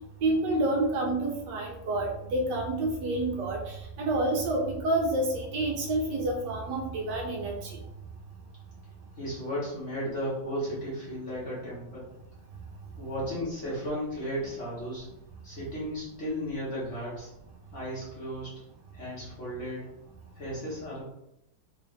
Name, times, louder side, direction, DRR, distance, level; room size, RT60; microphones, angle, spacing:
voice 1, 0.2-7.8, right 2 dB, 70° right, 1 dB, 1.1 m, -28 dB
voice 2, 9.2-12.1 13.0-15.1 15.4-17.3 17.7-18.5 18.9-19.9 20.4-21.0, equal, 45° left, -8 dB, 1.2 m, -34 dB
3.7 x 3.0 x 3.2 m, 0.84 s
omnidirectional pair, 2.3 m